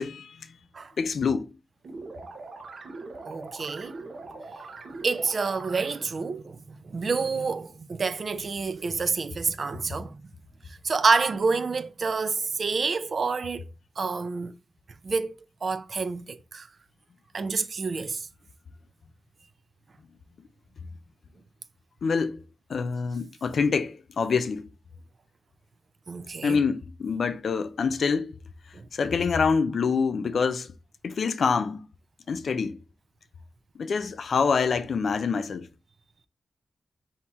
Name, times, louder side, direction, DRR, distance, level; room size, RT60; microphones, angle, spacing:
voice 1, 0.0-0.6 1.0-1.5 4.3-4.4 22.0-22.4 22.7-24.7 26.4-28.4 28.9-30.7 31.0-31.9 32.3-32.8 33.8-35.7, left 5 dB, 70° left, 0.4 m, -26 dB
sound 1, 1.8-6.3, right 3 dB, 70° right, 0.7 m, -42 dB
voice 2, 3.2-4.0 5.0-10.2 10.6-13.6 14.0-14.5 15.0-15.4 15.6-16.7 17.3-18.3 26.1-26.6 28.7-28.8, right 4 dB, 50° right, 0.4 m, -28 dB
4.3 x 2.8 x 3.4 m
wide cardioid pair, 155°, 0 cm